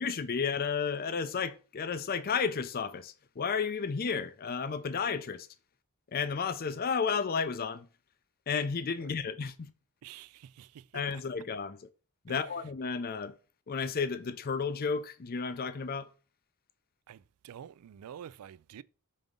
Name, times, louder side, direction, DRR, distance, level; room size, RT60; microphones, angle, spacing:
voice 1, 0.0-5.5 6.1-7.9 8.5-9.7 10.9-11.9 12.2-13.3 13.7-16.1, left 5 dB, 45° left, 0.5 m, -32 dB
voice 2, 10.0-10.8 11.1-11.2 12.3-12.4 17.1-18.8, right 9 dB, 90° right, 0.3 m, -48 dB
5.3 x 3.5 x 5.3 m
head